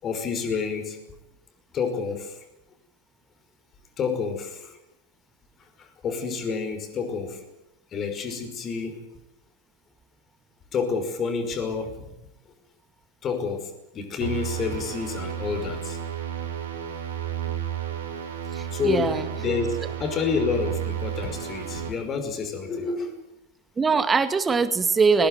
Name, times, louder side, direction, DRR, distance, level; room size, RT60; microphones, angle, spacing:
voice 1, 0.0-1.0 1.7-2.4 4.0-4.8 5.8-7.4 7.9-9.0 10.7-12.0 13.2-16.0 18.7-23.2, left 5 dB, 25° left, 6 dB, 5.5 m, -29 dB
sound 1, 14.2-21.9, right 10 dB, 65° right, 5.2 m, -32 dB
voice 2, 18.5-19.3 23.8-25.3, right 4 dB, 15° right, 11 dB, 2.2 m, -22 dB
24.5 x 18.5 x 9.5 m, 0.86 s
figure-of-eight pair, 90°, 0 cm